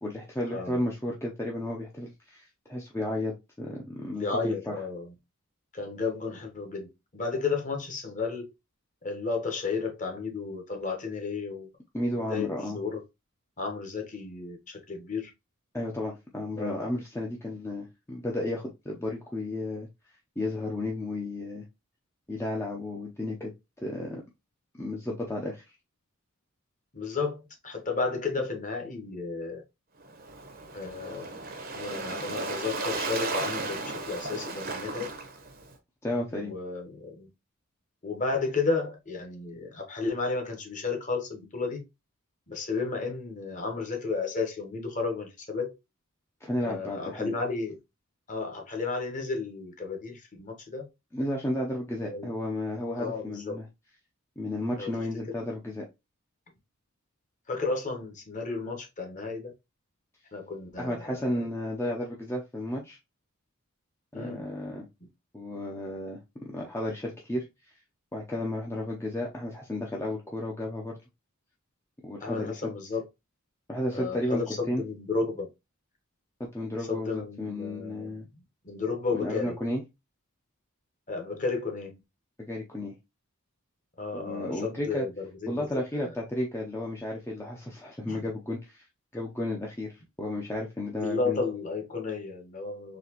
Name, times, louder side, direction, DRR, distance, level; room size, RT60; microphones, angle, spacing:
voice 1, 0.0-4.8 11.9-12.8 15.7-19.9 20.4-21.7 22.3-23.5 23.8-24.2 24.8-25.6 36.0-36.5 46.4-47.4 51.1-53.7 54.4-55.9 60.8-63.0 64.1-64.9 65.3-67.5 68.1-71.0 72.0-72.7 73.7-74.8 76.4-78.2 79.1-79.8 82.5-82.9 84.1-85.1 85.5-88.9 89.1-91.4, left 1 dB, 10° left, 0.5 m, -33 dB
voice 2, 4.1-5.1 5.7-8.5 9.0-11.7 12.3-13.0 13.6-15.3 16.5-16.9 26.9-29.6 30.7-31.4 31.7-35.1 36.3-37.3 38.0-41.8 42.5-45.7 46.6-47.8 48.3-50.9 52.0-52.3 53.0-53.6 54.8-54.9 57.5-59.5 60.3-61.0 64.1-64.4 72.2-73.0 73.9-75.5 76.9-78.1 78.6-79.6 81.1-81.9 84.0-85.8 88.1-88.2 91.0-93.0, left 4 dB, 35° left, 1.1 m, -33 dB
Waves surf, 30.0-35.7, right 3 dB, 45° right, 0.8 m, -35 dB
4.1 x 2.9 x 2.9 m
head